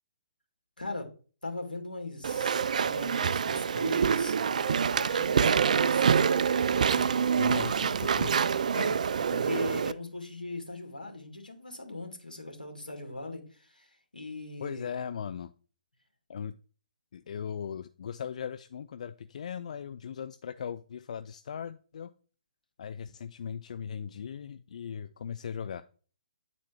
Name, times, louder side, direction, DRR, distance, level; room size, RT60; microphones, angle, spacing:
voice 1, 0.8-1.1 1.4-2.5 2.8-6.2 8.7-14.9, left 2 dB, 85° left, 2 dB, 2.0 m, -40 dB
Walk footsteps / Chatter / Squeak, 2.2-9.9, right 6 dB, 55° right, 0.4 m, -26 dB
voice 2, 6.7-8.3 14.6-15.5 16.3-16.6 17.1-22.1 22.8-25.8, left 7 dB, 50° left, 11 dB, 0.3 m, -38 dB
8.8 x 4.2 x 4.4 m, 0.39 s
figure-of-eight pair, 135°, 5 cm